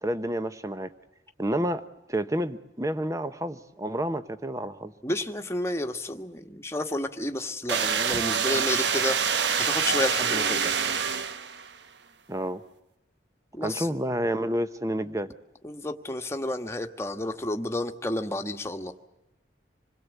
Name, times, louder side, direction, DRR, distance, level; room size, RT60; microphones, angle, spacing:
voice 1, 0.0-0.9 1.4-4.9 12.3-12.6 13.6-15.3, right 1 dB, 15° right, 12 dB, 0.9 m, -29 dB
voice 2, 5.0-10.7 13.5-14.0 15.6-18.9, left 1 dB, 15° left, 5 dB, 1.4 m, -31 dB
sound 1, 7.7-11.7, right 6 dB, 70° right, 1.0 m, -26 dB
27.0 x 21.0 x 8.3 m, 0.90 s
head